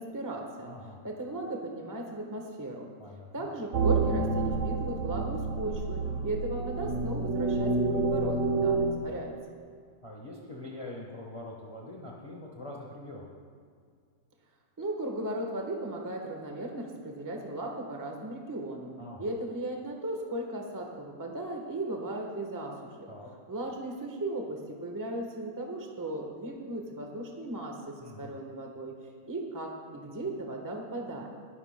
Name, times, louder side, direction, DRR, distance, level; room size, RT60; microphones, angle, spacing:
voice 1, 0.0-0.7 1.0-2.9 3.3-9.3 14.8-18.9 19.2-23.1 23.5-29.0 29.3-31.3, right 1 dB, 15° right, 2 dB, 0.9 m, -36 dB
voice 2, 0.6-1.0 3.0-3.5 6.0-6.3 8.5-8.8 10.0-13.3 19.0-19.3 23.1-23.3 28.0-28.4, left 1 dB, 20° left, -2 dB, 1.0 m, -44 dB
sound 1, 3.7-8.9, right 3 dB, 55° right, 0.9 m, -28 dB
20.5 x 12.5 x 2.2 m, 2.1 s
omnidirectional pair, 2.1 m